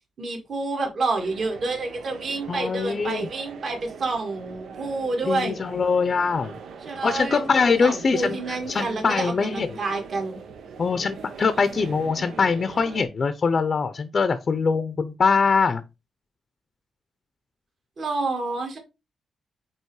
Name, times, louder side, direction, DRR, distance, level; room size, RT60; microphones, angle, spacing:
voice 1, 0.2-5.6 6.9-7.4 7.8-10.4 18.0-18.8, right 3 dB, 50° right, 2.0 m, -28 dB
sound 1, 1.2-13.0, right 6 dB, 90° right, 1.0 m, -41 dB
voice 2, 2.5-3.3 5.3-6.5 7.0-9.8 10.8-15.8, left 5 dB, 40° left, 0.6 m, -23 dB
9.0 x 3.1 x 4.7 m
wide cardioid pair, 150°, 0 cm